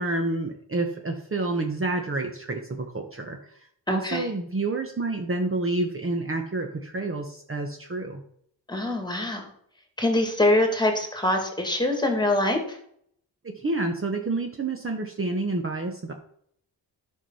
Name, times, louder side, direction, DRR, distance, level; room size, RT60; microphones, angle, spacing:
voice 1, 0.0-3.6 3.9-8.2 13.4-16.1, right 2 dB, 30° right, 3 dB, 1.2 m, -29 dB
voice 2, 3.9-4.3 8.7-9.4 10.0-12.6, left 1 dB, 10° left, 4 dB, 2.3 m, -24 dB
11.0 x 5.7 x 5.6 m, 0.67 s
cardioid pair, 100°, 44 cm